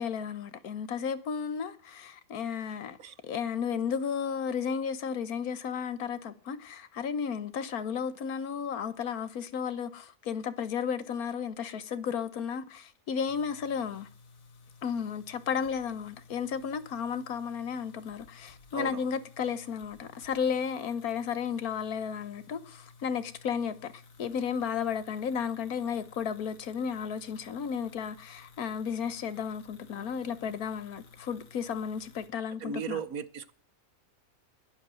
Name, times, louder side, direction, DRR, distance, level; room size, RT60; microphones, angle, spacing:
voice 1, 0.0-3.0 3.2-14.1 14.8-33.0, left 7 dB, 85° left, 1.5 m, -33 dB
sound 1, 13.3-32.3, left 4 dB, 70° left, 1.8 m, -56 dB
voice 2, 18.7-19.1 32.6-33.5, right 8 dB, 75° right, 1.4 m, -36 dB
11.5 x 11.0 x 7.6 m
omnidirectional pair, 1.5 m